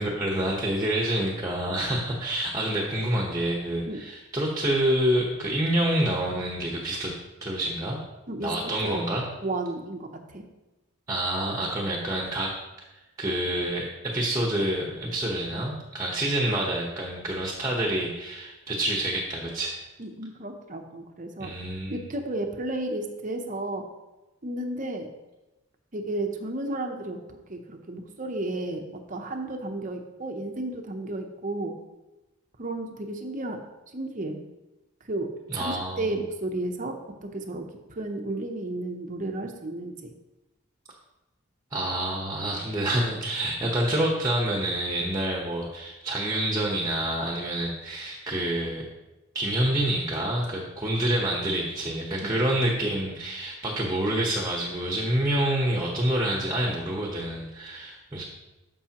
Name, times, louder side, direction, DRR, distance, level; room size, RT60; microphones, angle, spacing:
voice 1, 0.0-7.1 7.4-8.0 8.4-9.2 11.1-12.6 13.2-19.8 21.4-21.9 35.5-36.0 41.7-48.9 49.3-58.2, right 1 dB, 15° right, -1 dB, 1.0 m, -27 dB
voice 2, 9.4-10.4 20.0-21.5 21.9-23.8 24.4-25.1 25.9-31.8 32.6-33.6 33.9-34.4 35.0-37.0 37.2-40.1 52.2-52.5, right 2 dB, 35° right, 4 dB, 0.7 m, -33 dB
13.0 x 5.4 x 2.9 m, 1.0 s
head